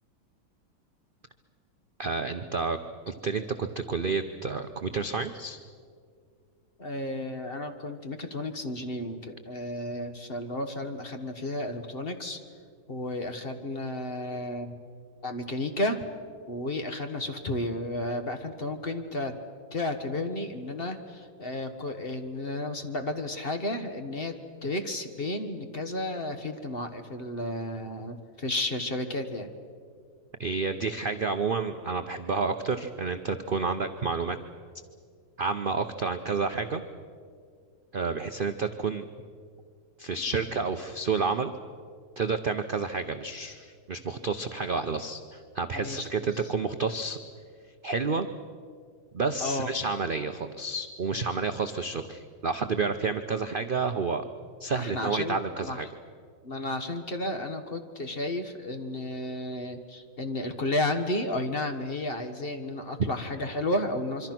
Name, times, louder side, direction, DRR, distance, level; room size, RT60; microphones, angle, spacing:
voice 1, 2.0-2.8 3.1-5.6 30.4-34.4 35.4-36.8 37.9-39.1 40.0-41.5 42.2-47.2 47.8-48.3 49.1-54.2 54.6-55.9, right 4 dB, 65° right, 7 dB, 0.5 m, -30 dB
voice 2, 6.8-12.4 12.9-14.8 15.2-16.0 16.5-19.4 19.7-29.5 45.7-46.1 49.4-49.7 54.7-55.8 56.4-64.3, left 1 dB, 35° left, 6 dB, 1.4 m, -32 dB
25.5 x 24.5 x 6.0 m, 2.1 s
omnidirectional pair, 2.1 m